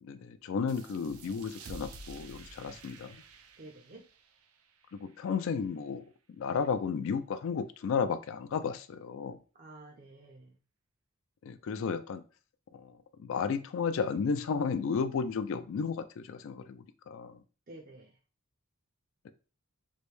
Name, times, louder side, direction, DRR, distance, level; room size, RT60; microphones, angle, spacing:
voice 1, 0.0-3.2 4.9-6.0 6.4-9.4 11.4-12.2 12.7-12.9 13.2-17.4 19.2-19.3, left 5 dB, 65° left, 11 dB, 0.3 m, -33 dB
sound 1, 0.7-5.9, right 3 dB, 90° right, 0.5 m, -51 dB
voice 2, 3.6-4.0 9.5-10.6 17.7-18.2, right 2 dB, 40° right, 0 dB, 0.5 m, -50 dB
3.1 x 2.6 x 3.2 m, 0.35 s
head